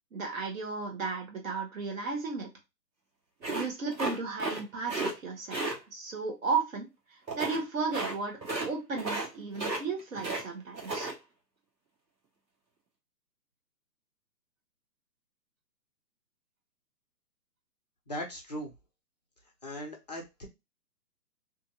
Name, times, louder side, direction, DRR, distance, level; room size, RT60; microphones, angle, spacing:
voice 1, 0.1-2.5 3.5-5.6 5.9-6.9 7.3-8.4 8.6-11.1, right 4 dB, 50° right, 1 dB, 1.2 m, -34 dB
sound 1, 3.4-4.6 4.9-5.1 5.5-5.8 7.3-7.6 7.9-8.1 8.4-8.7 9.0-9.3 9.5-10.4 10.7-11.1, right 2 dB, 85° right, 1.2 m, -33 dB
voice 2, 18.1-18.7 19.6-20.5, equal, 25° left, 1 dB, 0.5 m, -38 dB
2.7 x 2.6 x 2.6 m, 0.23 s
figure-of-eight pair, 135°, 50 cm